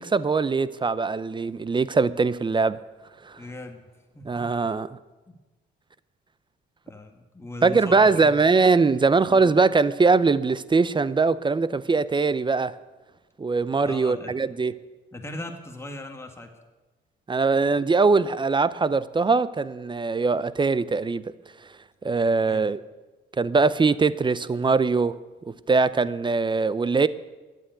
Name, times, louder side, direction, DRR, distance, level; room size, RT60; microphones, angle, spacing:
voice 1, 0.0-2.8 3.2-3.4 4.2-5.0 7.6-12.7 13.4-14.7 17.3-21.2 22.0-22.8 23.4-25.2 25.7-27.1, right 4 dB, 25° right, 17 dB, 0.6 m, -21 dB
voice 2, 3.4-3.9 4.1-4.5 6.9-8.3 9.3-9.5 13.8-14.3 15.1-16.5 22.4-22.7, left 2 dB, 15° left, 3 dB, 1.8 m, -38 dB
12.5 x 9.3 x 9.2 m, 1.2 s
cardioid pair, 90°, 20 cm